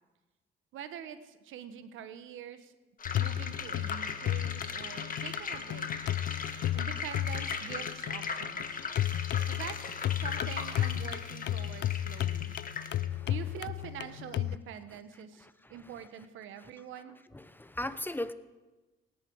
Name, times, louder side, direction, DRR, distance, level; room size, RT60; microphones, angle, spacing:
voice 1, 0.7-2.7 3.2-5.9 6.7-8.7 9.5-12.6 13.3-17.2, right 9 dB, 85° right, 10 dB, 1.3 m, -45 dB
sound 1, 3.0-13.0, left 5 dB, 45° left, 1.6 m, -38 dB
sound 2, 3.1-14.6, left 13 dB, 65° left, 0.5 m, -34 dB
voice 2, 15.4-15.8 17.3-18.3, left 1 dB, 10° left, 12 dB, 0.8 m, -38 dB
26.0 x 10.5 x 4.8 m, 1.1 s
cardioid pair, 90°, 20 cm